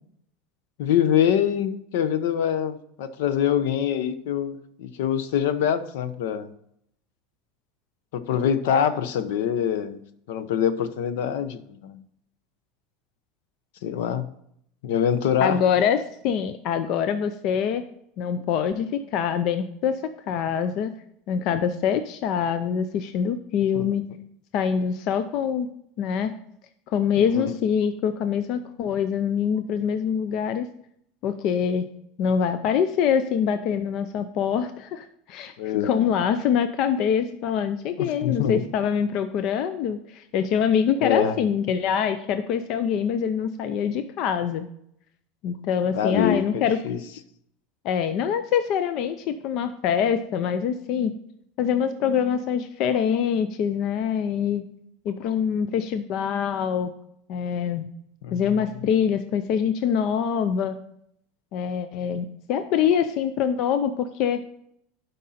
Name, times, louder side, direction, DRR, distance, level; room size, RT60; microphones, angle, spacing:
voice 1, 0.8-6.5 8.1-10.0 10.3-12.0 13.8-14.3 14.8-15.6 23.7-23.9 27.2-27.5 35.6-36.1 38.0-38.6 41.0-41.4 45.9-47.0 58.2-58.4, left 9 dB, 75° left, 12 dB, 0.8 m, -24 dB
voice 2, 15.4-16.0 16.2-17.8 18.2-19.9 20.3-20.9 21.3-24.0 24.5-25.7 26.0-26.3 26.9-30.7 31.2-31.9 32.2-35.5 35.8-44.7 45.4-46.8 47.8-51.2 51.6-54.6 55.1-56.9 57.3-57.9 58.3-60.8 61.5-64.4, left 8 dB, 45° left, 10 dB, 0.5 m, -24 dB
11.0 x 5.4 x 4.2 m, 0.72 s
supercardioid pair, 155°, 0 cm